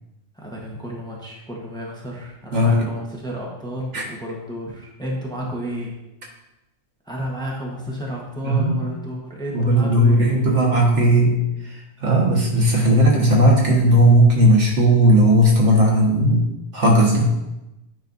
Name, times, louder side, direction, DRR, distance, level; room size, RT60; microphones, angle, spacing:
voice 1, 0.3-6.0 7.1-10.4, equal, 5° left, -3 dB, 1.0 m, -31 dB
voice 2, 2.5-2.9 3.9-4.0 8.4-8.8 9.5-11.3 12.0-16.5 16.7-17.3, right 1 dB, 70° right, -3 dB, 1.8 m, -16 dB
9.1 x 5.3 x 2.7 m, 0.94 s
omnidirectional pair, 1.2 m